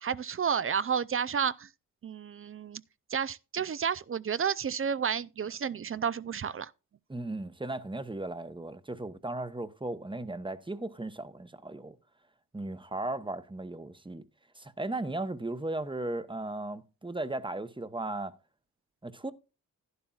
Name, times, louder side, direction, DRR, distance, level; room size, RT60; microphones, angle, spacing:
voice 1, 0.0-1.7 2.0-2.8 3.1-6.7, right 7 dB, 40° right, 0.4 m, -31 dB
voice 2, 7.1-12.0 12.5-14.2 14.5-18.3 19.0-19.3, right 2 dB, 15° right, 0.9 m, -36 dB
11.0 x 11.0 x 2.4 m
cardioid pair, 65°, 36 cm